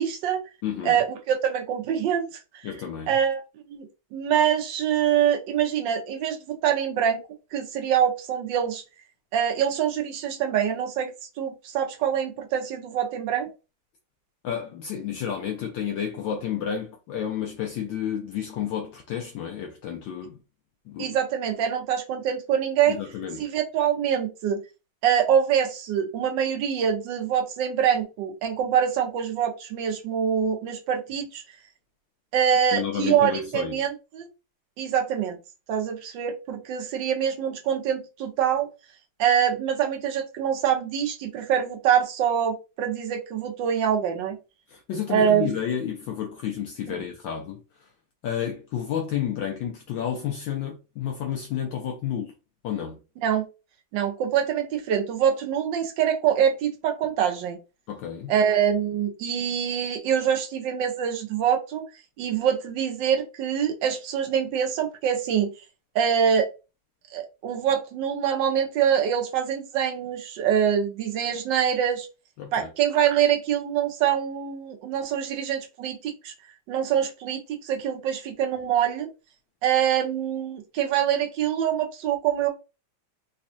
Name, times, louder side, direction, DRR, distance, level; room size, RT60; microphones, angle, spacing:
voice 1, 0.0-0.5 0.8-2.4 3.1-7.2 7.5-8.8 9.3-13.5 21.0-23.0 23.4-24.6 25.0-31.4 32.3-34.3 34.8-35.4 35.7-38.7 39.2-44.4 45.1-45.5 46.9-47.0 53.2-53.5 53.9-57.6 58.3-61.8 62.2-65.5 65.9-66.5 67.1-72.1 72.5-76.3 76.7-79.1 79.6-82.5, right 8 dB, 70° right, 1.3 m, -25 dB
voice 2, 0.6-1.0 2.6-3.1 14.4-20.4 20.9-21.2 22.9-23.5 32.7-33.9 44.7-47.9 48.2-52.3 52.6-53.0 57.9-58.3 72.4-72.7, left 9 dB, 70° left, 1.2 m, -31 dB
4.1 x 2.3 x 2.6 m
omnidirectional pair, 2.3 m